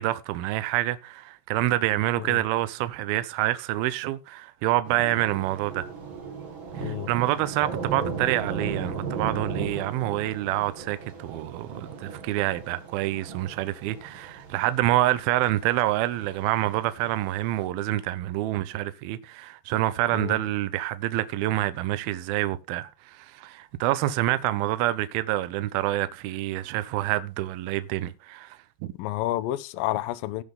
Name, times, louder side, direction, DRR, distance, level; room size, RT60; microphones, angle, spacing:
voice 1, 0.0-5.9 6.8-28.9, right 15 dB, 75° right, 2.3 m, -27 dB
Thunder / Rain, 4.8-17.7, right 5 dB, 45° right, 1.8 m, -37 dB
voice 2, 29.0-30.4, left 15 dB, 85° left, 2.0 m, -30 dB
17.5 x 6.1 x 3.7 m
omnidirectional pair, 4.9 m